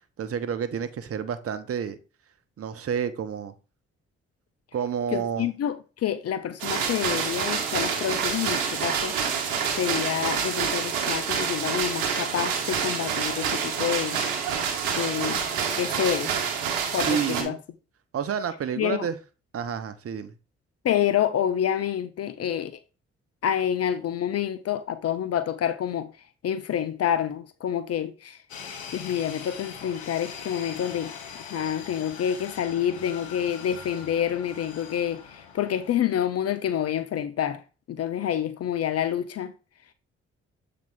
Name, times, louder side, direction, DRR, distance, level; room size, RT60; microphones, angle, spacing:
voice 1, 0.0-2.0 2.6-3.5 4.7-5.5 17.1-17.6 18.1-19.2 19.5-20.3, right 7 dB, 50° right, 1.0 m, -29 dB
voice 2, 5.1-14.2 14.9-15.4 15.8-16.4 16.9-17.6 18.8-19.1 20.8-22.8 23.4-26.1 26.4-28.4 28.9-31.1 31.5-37.6 37.9-39.5, left 9 dB, 55° left, 0.6 m, -28 dB
sound 1, 6.6-17.4, right 7 dB, 90° right, 1.0 m, -27 dB
sound 2, 28.5-35.9, left 6 dB, 85° left, 1.1 m, -41 dB
7.5 x 3.8 x 3.7 m
hypercardioid pair, 45°, 30 cm